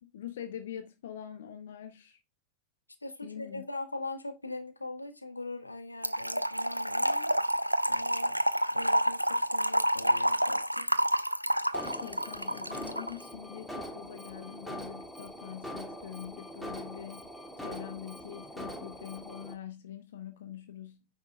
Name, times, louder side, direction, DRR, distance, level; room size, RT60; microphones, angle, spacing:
voice 1, 0.0-2.2 3.2-3.6 11.8-21.1, left 10 dB, 60° left, 0.9 m, -44 dB
voice 2, 3.0-7.3 7.9-8.4 8.7-10.9, left 2 dB, 85° left, 1.3 m, -41 dB
Trickle dribble / Fill (with liquid), 6.0-13.1, equal, 90° right, 0.5 m, -28 dB
Alarm, 11.7-19.5, equal, ahead, 2.2 m, -43 dB
9.4 x 5.8 x 3.4 m
figure-of-eight pair, 90°, 0 cm